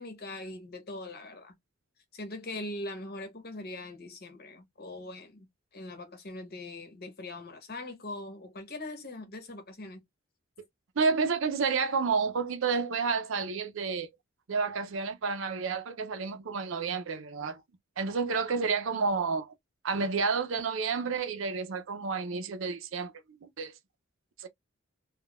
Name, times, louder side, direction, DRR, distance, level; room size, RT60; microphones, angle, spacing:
voice 1, 0.0-1.5 2.1-5.5 5.7-10.0, left 2 dB, 50° left, 1.0 m, -41 dB
voice 2, 11.0-14.1 14.5-17.6 18.0-19.5 19.8-23.1 23.4-23.7 24.4-24.5, right 5 dB, 65° right, 0.5 m, -30 dB
3.6 x 2.2 x 2.3 m
head